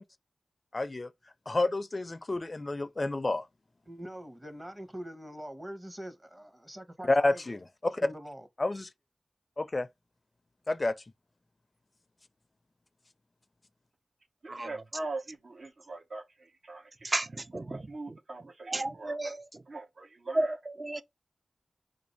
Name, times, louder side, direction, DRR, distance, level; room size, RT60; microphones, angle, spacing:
voice 1, 0.7-1.1 1.5-3.4 7.0-8.1 8.6-8.9 9.6-9.9 10.7-10.9, left 2 dB, 40° left, 0.4 m, -29 dB
voice 2, 3.9-7.5 8.0-8.5, equal, 25° right, 0.9 m, -43 dB
voice 3, 14.4-16.2 16.6-16.8 17.7-19.3 19.7-20.5, right 2 dB, 70° right, 0.8 m, -41 dB
voice 4, 17.0-18.2 18.7-19.4 20.3-21.0, right 2 dB, 40° right, 0.5 m, -33 dB
2.6 x 2.5 x 4.1 m
cardioid pair, 45°, 0 cm